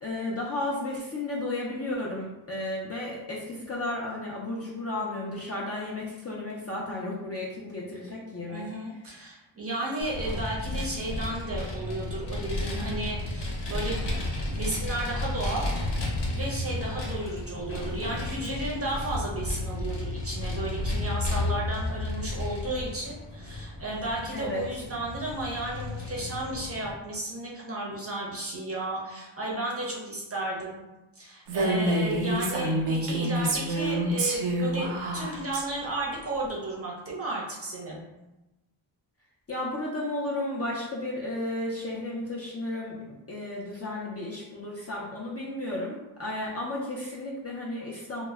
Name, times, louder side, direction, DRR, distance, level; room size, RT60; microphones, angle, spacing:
voice 1, 0.0-8.7 24.3-24.6 39.5-48.3, left 1 dB, 35° left, -5 dB, 0.4 m, -33 dB
voice 2, 8.5-14.0 14.4-30.8 31.2-38.0, right 1 dB, 30° right, -4 dB, 0.5 m, -33 dB
Vehicle, 10.0-26.9, left 2 dB, 60° left, 0.7 m, -33 dB
Female speech woman speaking, 31.5-35.6, right 1 dB, 90° right, 0.6 m, -27 dB
2.1 x 2.0 x 3.4 m, 0.99 s
wide cardioid pair, 135°, 49 cm